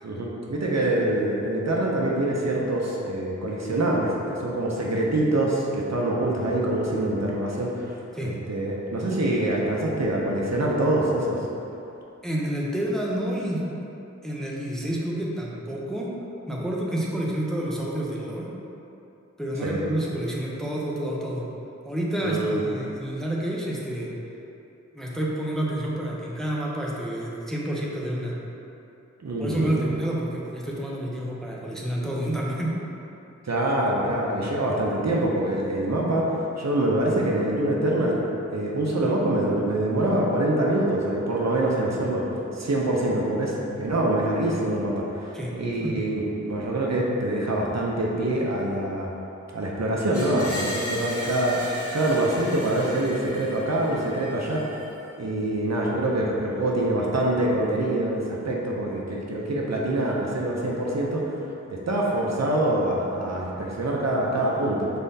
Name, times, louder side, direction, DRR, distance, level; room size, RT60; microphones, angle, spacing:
voice 1, 0.0-8.0 8.2-11.4 19.6-19.8 22.2-22.6 29.2-29.7 33.4-49.1 49.5-54.7 55.2-61.4 61.7-64.9, right 1 dB, 60° right, -3 dB, 0.6 m, -25 dB
voice 2, 12.2-13.6 14.2-16.1 16.5-18.5 19.4-21.4 21.8-24.1 24.9-28.4 29.4-32.7 45.3-45.5 45.8-46.1, right 1 dB, ahead, -4 dB, 0.6 m, -29 dB
Screech, 50.1-55.1, equal, 50° left, 0.9 m, -36 dB
4.2 x 3.6 x 2.7 m, 2.8 s
wide cardioid pair, 50°, 30 cm